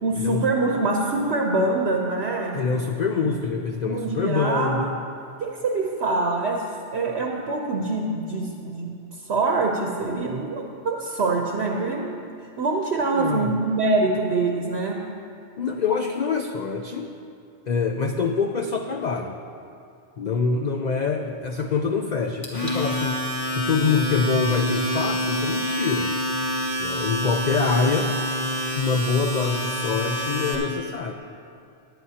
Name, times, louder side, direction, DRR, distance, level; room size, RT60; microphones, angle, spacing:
voice 1, 0.0-2.6 3.2-3.3 3.8-4.9 5.4-6.7 6.9-12.2 12.6-15.0, right 3 dB, 60° right, 1 dB, 1.0 m, -25 dB
voice 2, 2.5-4.9 13.1-13.5 15.6-17.1 17.7-19.4 20.2-23.2 23.5-26.1 26.8-28.1 28.8-31.1, left 5 dB, 55° left, 4 dB, 0.5 m, -25 dB
Domestic sounds home sounds, 22.4-30.5, equal, 25° left, 1.7 m, -27 dB
17.0 x 10.5 x 2.8 m, 2.5 s
omnidirectional pair, 1.3 m